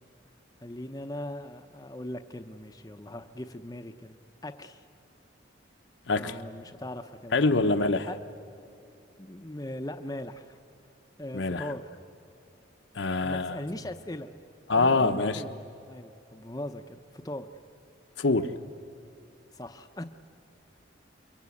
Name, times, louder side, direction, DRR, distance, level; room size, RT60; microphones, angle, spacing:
voice 1, 0.6-4.2 4.4-4.8 6.2-7.7 8.1-8.2 9.2-10.6 11.2-11.8 13.2-14.3 14.7-17.5 19.5-20.0, left 1 dB, 20° left, 6 dB, 0.7 m, -39 dB
voice 2, 6.1-6.4 7.3-8.1 11.3-11.7 12.9-13.6 14.7-15.4 18.2-18.5, left 3 dB, 75° left, 8 dB, 1.0 m, -25 dB
28.5 x 23.0 x 8.5 m, 2.5 s
head